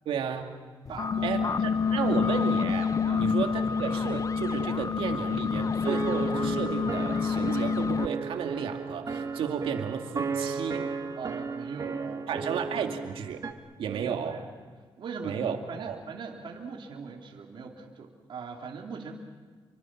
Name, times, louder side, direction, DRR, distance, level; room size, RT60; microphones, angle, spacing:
voice 1, 0.1-0.6 1.2-10.8 12.3-13.4 13.8-14.4 15.2-16.0, right 7 dB, 90° right, 5 dB, 2.5 m, -33 dB
sound 1, 0.9-8.1, left 6 dB, 40° left, 0.6 m, -28 dB
voice 2, 0.9-2.0 3.0-3.3 11.1-12.9 13.9-14.5 15.0-19.1, right 5 dB, 65° right, 1 dB, 3.2 m, -40 dB
sound 2, 5.9-13.5, right 4 dB, 40° right, 1.8 m, -34 dB
29.0 x 24.5 x 6.2 m, 1.5 s
cardioid pair, 105°, 9 cm